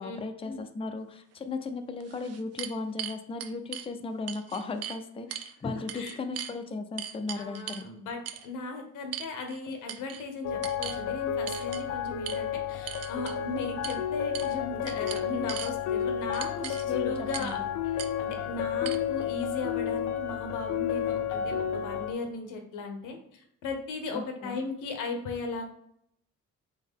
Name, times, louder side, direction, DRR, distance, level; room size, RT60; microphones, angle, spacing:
voice 1, 0.0-7.8 16.9-17.1 17.4-17.7 24.1-24.6, left 3 dB, 20° left, 7 dB, 0.4 m, -36 dB
sound 1, 1.4-1.5 2.0-3.9 4.3-5.0 5.3-5.5 5.9-6.5 7.0-7.9 8.3-8.5 9.1-9.6 9.9-10.2 10.6-11.0 11.5-11.8 12.3-12.4 12.9-13.4 13.8-14.0 14.3-14.6 14.9-15.7 16.3-16.9 17.3-17.6 18.0-18.1 18.9-19.0, right 10 dB, 55° right, 0.5 m, -39 dB
voice 2, 5.6-6.2 7.3-17.6 17.9-25.6, left 3 dB, 90° left, 4 dB, 0.9 m, -37 dB
sound 2, 10.4-22.1, left 9 dB, 70° left, 0.5 m, -31 dB
3.8 x 3.0 x 3.6 m, 0.73 s
cardioid pair, 90°, 30 cm